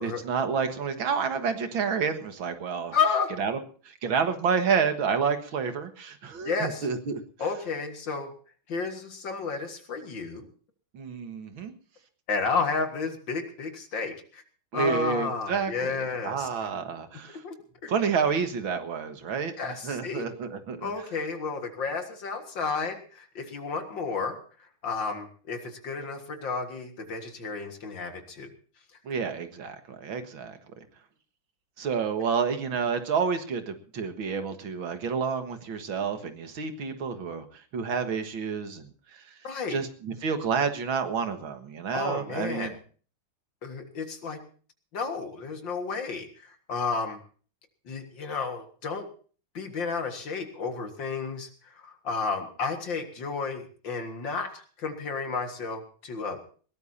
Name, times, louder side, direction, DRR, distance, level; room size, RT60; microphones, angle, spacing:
voice 1, 0.0-3.0 3.4-3.6 3.9-7.2 10.9-11.7 14.7-17.4 17.9-20.9 29.1-30.6 31.8-39.2 39.7-42.7, right 6 dB, 70° right, 8 dB, 2.3 m, -29 dB
voice 2, 2.9-3.3 6.4-6.9 7.4-8.3 8.7-10.5 12.3-14.4 14.7-16.5 17.4-17.5 17.8-17.9 19.6-20.3 20.8-24.4 24.8-28.5 39.4-39.8 41.9-42.7 43.6-44.4 44.9-47.2 47.9-49.1 49.5-51.5 51.7-56.4, left 5 dB, 60° left, 6 dB, 2.5 m, -32 dB
21.0 x 18.0 x 2.8 m, 0.41 s
omnidirectional pair, 2.3 m